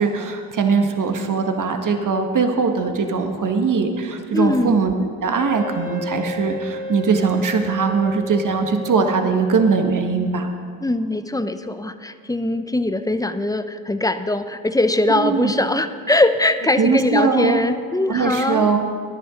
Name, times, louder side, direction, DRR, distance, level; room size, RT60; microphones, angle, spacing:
voice 1, 0.0-4.9 5.2-10.5 15.1-15.5 16.8-17.7 18.1-18.8, right 5 dB, 45° right, 5 dB, 1.7 m, -20 dB
voice 2, 4.3-4.9 10.8-18.8, left 2 dB, 10° left, 10 dB, 0.8 m, -21 dB
Wind instrument woodwind instrument, 5.3-10.4, left 1 dB, 20° right, 2.3 m, -33 dB
17.5 x 11.0 x 3.9 m, 2.1 s
hypercardioid pair, 50°, 44 cm